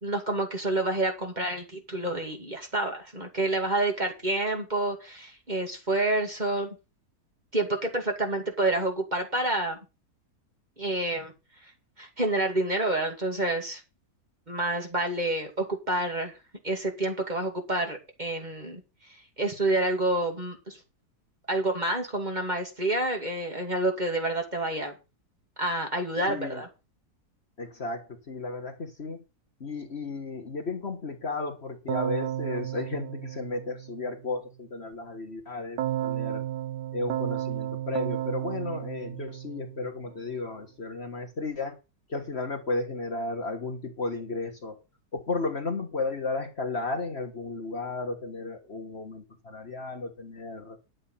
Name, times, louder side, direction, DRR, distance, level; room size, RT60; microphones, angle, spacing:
voice 1, 0.0-6.8 7.5-9.8 10.8-11.3 12.0-13.8 14.5-16.3 16.6-18.8 19.4-20.8 21.5-24.9 25.6-26.7, right 2 dB, 25° right, 3 dB, 2.6 m, -28 dB
voice 2, 26.3-26.6 27.6-29.2 29.6-36.4 36.9-41.8 42.1-44.8 45.1-50.8, left 3 dB, 40° left, 3 dB, 1.7 m, -34 dB
Keyboard (musical), 31.9-34.2 35.8-40.1, right 12 dB, 90° right, 1.5 m, -33 dB
11.0 x 8.0 x 5.7 m, 0.29 s
omnidirectional pair, 1.8 m